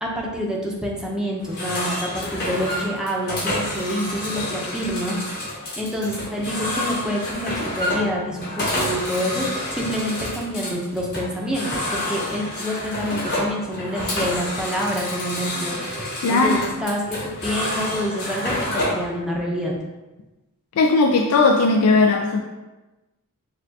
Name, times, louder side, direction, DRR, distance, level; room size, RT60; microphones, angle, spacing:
voice 1, 0.0-5.2 5.8-9.5 9.7-15.8 16.3-19.7, equal, 5° right, -2 dB, 0.6 m, -27 dB
sound 1, 1.4-19.1, left 1 dB, 45° left, 1.4 m, -28 dB
voice 2, 16.2-16.6 20.8-22.4, left 3 dB, 75° left, 2 dB, 0.3 m, -17 dB
6.5 x 2.3 x 2.7 m, 1.1 s
head